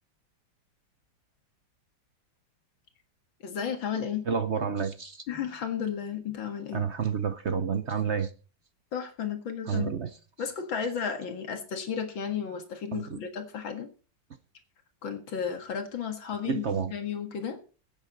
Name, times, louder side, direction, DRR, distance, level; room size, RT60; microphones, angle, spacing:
voice 1, 3.4-4.3 5.3-6.9 8.9-10.0 10.4-13.9 15.0-17.6, left 7 dB, 80° left, 2.5 m, -33 dB
voice 2, 4.3-5.2 6.7-8.3 9.7-10.1 12.9-13.2 16.5-16.9, right 6 dB, 55° right, 0.8 m, -29 dB
16.5 x 9.1 x 4.1 m
omnidirectional pair, 2.1 m